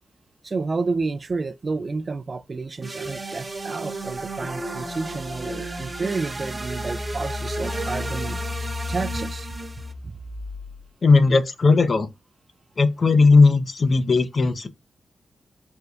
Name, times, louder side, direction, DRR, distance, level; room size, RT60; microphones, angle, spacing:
voice 1, 0.4-8.4 8.9-9.5 10.0-10.2, right 3 dB, 45° right, 0.3 m, -30 dB
sound 1, 2.8-9.9, right 2 dB, 30° right, 0.7 m, -33 dB
Engine, 4.9-10.8, left 3 dB, 80° left, 2.1 m, -35 dB
voice 2, 11.0-12.1 12.8-14.7, left 4 dB, 55° left, 0.5 m, -17 dB
4.3 x 2.2 x 2.4 m
supercardioid pair, 45°, 0 cm